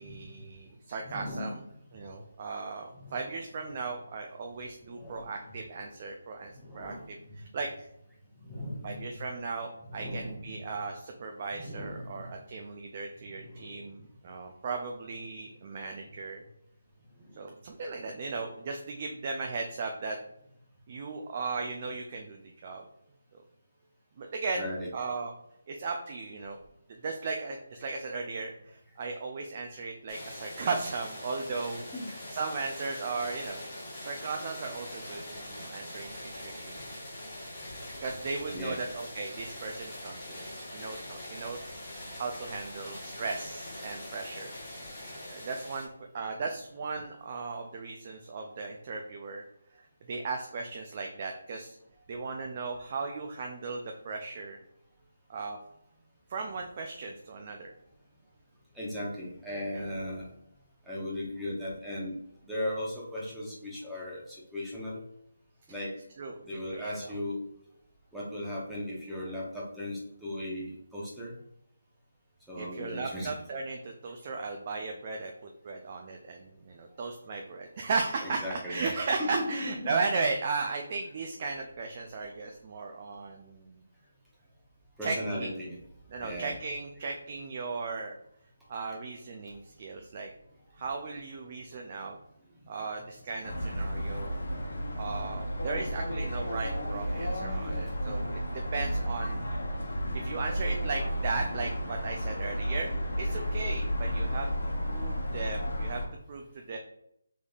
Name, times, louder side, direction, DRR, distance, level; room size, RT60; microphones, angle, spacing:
voice 1, 0.0-1.6 1.9-7.9 8.8-16.4 17.4-20.2 20.9-22.8 23.3-23.4 24.2-24.6 24.9-25.3 25.7-26.6 27.0-33.6 34.0-36.8 38.0-41.7 42.2-44.5 45.3-45.9 46.1-49.4 50.1-51.8 52.1-54.6 55.3-55.6 56.3-57.7 66.2-66.4 66.7-66.9 72.6-83.8 85.0-85.6 86.1-88.1 88.7-90.3 90.8-92.2 92.7-94.5 95.0-98.3 98.7-99.5 100.1-102.9 103.2-104.5 104.9-106.0 106.3-106.8, right 4 dB, 35° right, 2 dB, 0.3 m, -36 dB
voice 2, 1.0-1.6 3.0-3.3 4.9-5.3 6.5-7.1 8.4-9.2 9.9-10.7 11.5-12.2 13.4-13.7 24.6-24.9 31.6-32.1 35.7-35.9 38.5-38.9 58.7-60.2 60.9-62.2 62.5-65.0 65.7-65.9 66.4-67.4 68.1-71.3 72.5-73.4 78.2-79.9 85.0-85.8 86.2-86.6 93.8-93.9 95.8-96.1 96.6-98.4 99.2-99.4 100.7-101.0 105.6-105.7, left 1 dB, ahead, -7 dB, 0.8 m, -38 dB
sound 1, 30.1-45.9, left 1 dB, 20° left, 1.1 m, -43 dB
sound 2, 93.4-106.1, equal, 80° left, 1.0 m, -32 dB
3.9 x 3.4 x 2.3 m, 0.77 s
figure-of-eight pair, 165°, 0 cm